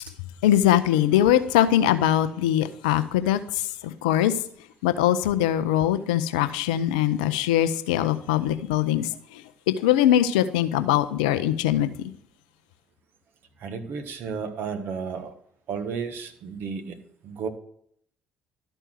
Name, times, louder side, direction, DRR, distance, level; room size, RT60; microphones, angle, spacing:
voice 1, 0.4-4.3 4.8-11.9, left 12 dB, 80° left, 12 dB, 0.6 m, -22 dB
voice 2, 13.6-15.3 15.7-17.0 17.2-17.5, right 5 dB, 60° right, 6 dB, 1.4 m, -32 dB
12.5 x 4.5 x 6.2 m, 0.65 s
hypercardioid pair, 50°, 4 cm